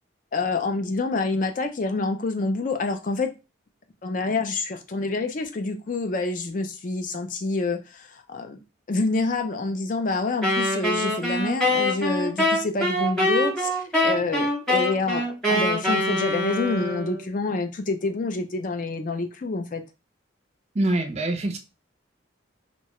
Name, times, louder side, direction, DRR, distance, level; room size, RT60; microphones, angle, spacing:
voice 1, 0.3-3.3 4.0-8.6 8.9-19.8, left 3 dB, 40° left, 0.4 m, -27 dB
Wind instrument woodwind instrument, 10.4-17.3, left 1 dB, 5° left, 0.9 m, -24 dB
voice 2, 20.8-21.6, right 1 dB, 35° right, 0.4 m, -24 dB
2.7 x 2.1 x 2.9 m
head